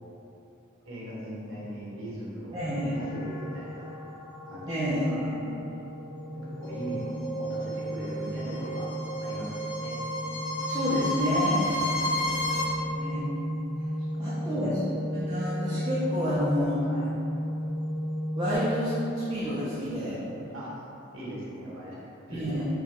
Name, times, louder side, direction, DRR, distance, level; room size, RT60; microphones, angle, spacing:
voice 1, 0.9-4.0 4.5-5.3 6.3-8.9 9.2-10.0 11.7-12.4 14.0-14.7 16.8-17.1 20.5-20.7 21.1-22.0 22.3-22.6, equal, 70° right, -7 dB, 1.0 m, -40 dB
voice 2, 2.5-3.0 4.7-5.4 10.7-11.6 13.0-13.3 14.2-16.8 18.4-20.2 22.3-22.6, equal, 15° right, -11 dB, 0.4 m, -29 dB
sound 1, 2.6-18.6, equal, 5° left, 1.1 m, -35 dB
sound 2, 6.6-12.6, equal, 55° left, 0.6 m, -32 dB
4.7 x 2.2 x 2.9 m, 2.8 s
head